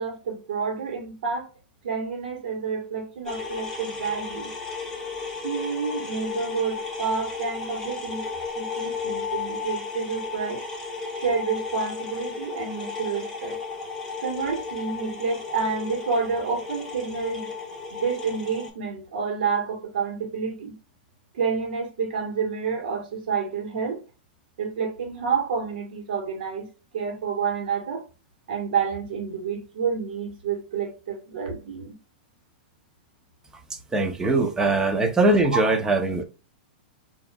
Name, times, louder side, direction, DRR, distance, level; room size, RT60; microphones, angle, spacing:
voice 1, 0.0-1.5 1.8-4.5 5.4-8.2 8.5-10.6 11.2-13.6 14.2-17.5 17.9-20.7 21.3-24.0 24.6-26.7 26.9-28.0 28.5-31.9 35.5-35.6, right 5 dB, 75° right, 1.5 m, -29 dB
sound 1, 3.3-18.7, left 4 dB, 10° left, 1.4 m, -34 dB
voice 2, 33.7-36.2, right 2 dB, 10° right, 0.6 m, -22 dB
4.7 x 2.9 x 2.3 m
hypercardioid pair, 140°, 5 cm